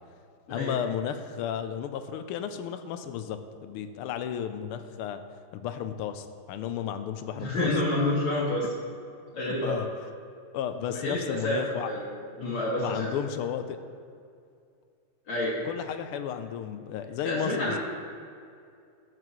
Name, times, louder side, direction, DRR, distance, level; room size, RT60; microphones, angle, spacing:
voice 1, 0.5-5.2 5.5-7.7 9.4-9.9 10.5-11.9 12.8-13.8 15.7-17.8, left 9 dB, 85° left, 9 dB, 1.5 m, -33 dB
voice 2, 7.3-8.7 9.3-9.8 10.9-12.0 12.4-13.1 15.3-15.6 17.2-17.8, left 1 dB, 65° left, -6 dB, 2.3 m, -28 dB
12.5 x 7.8 x 3.1 m, 2.4 s
omnidirectional pair, 2.4 m